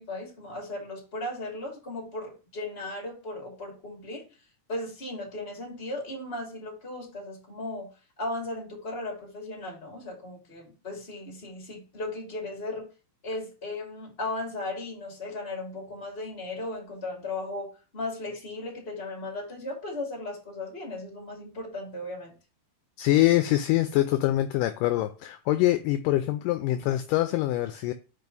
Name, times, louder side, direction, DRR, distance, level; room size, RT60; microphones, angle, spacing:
voice 1, 0.0-4.2 4.7-7.9 8.2-12.9 13.2-22.3, left 2 dB, 20° left, -1 dB, 2.2 m, -36 dB
voice 2, 23.0-27.9, left 15 dB, 80° left, 9 dB, 2.0 m, -24 dB
5.3 x 4.6 x 5.3 m, 0.34 s
omnidirectional pair, 4.1 m